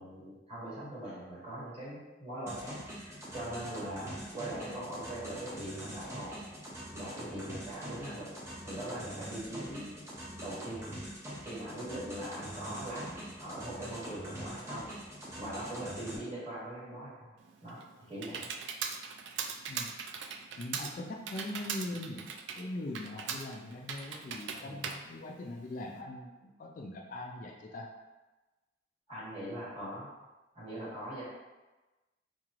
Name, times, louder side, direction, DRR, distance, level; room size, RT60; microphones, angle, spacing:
voice 1, 0.0-6.4 6.9-8.3 8.6-9.9 10.4-10.8 11.4-14.9 15.4-17.3 17.6-17.8 18.1-18.5 24.6-24.8 29.1-30.1 30.5-31.2, right 1 dB, 35° right, -8 dB, 1.4 m, -41 dB
sound 1, 2.5-16.2, equal, 15° right, 0.6 m, -44 dB
Computer keyboard, 17.4-26.0, right 6 dB, 65° right, 0.3 m, -40 dB
voice 2, 20.6-27.9, left 1 dB, 45° left, 1 dB, 0.3 m, -41 dB
3.9 x 3.1 x 2.5 m, 1.1 s
head